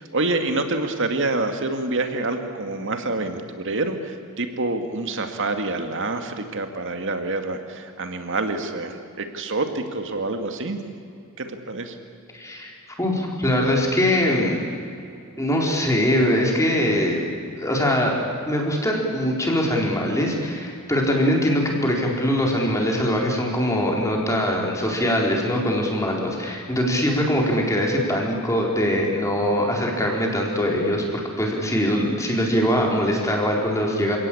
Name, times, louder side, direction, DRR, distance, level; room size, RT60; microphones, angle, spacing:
voice 1, 0.0-10.8 11.4-12.0, right 2 dB, 60° right, 6 dB, 2.3 m, -27 dB
voice 2, 12.3-12.7 13.0-14.7 15.4-17.3 17.6-18.2 18.5-34.2, equal, 15° left, 0 dB, 4.3 m, -22 dB
28.5 x 18.0 x 8.7 m, 2.5 s
head